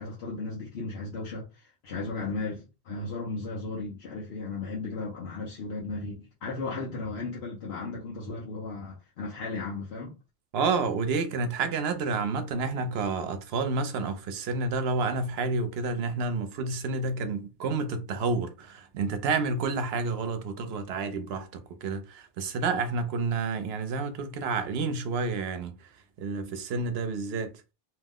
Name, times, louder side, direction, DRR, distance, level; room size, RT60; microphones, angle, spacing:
voice 1, 0.0-10.2, left 3 dB, 80° left, 1.0 m, -35 dB
voice 2, 10.5-25.9 26.2-27.5, right 4 dB, 80° right, 0.8 m, -29 dB
2.8 x 2.0 x 3.5 m
omnidirectional pair, 1.0 m